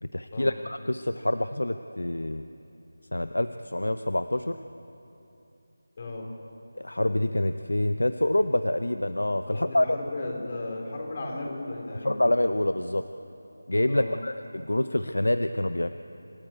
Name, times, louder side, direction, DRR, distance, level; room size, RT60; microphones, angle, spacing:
voice 1, 0.0-2.4 3.1-4.6 6.7-9.9 12.0-13.0 13.7-15.9, left 1 dB, 85° left, 10 dB, 0.7 m, -26 dB
voice 2, 6.0-6.3 9.5-12.2 13.9-14.2, left 2 dB, 40° left, 0 dB, 3.4 m, -35 dB
26.5 x 13.0 x 8.8 m, 2.9 s
figure-of-eight pair, 165°, 0 cm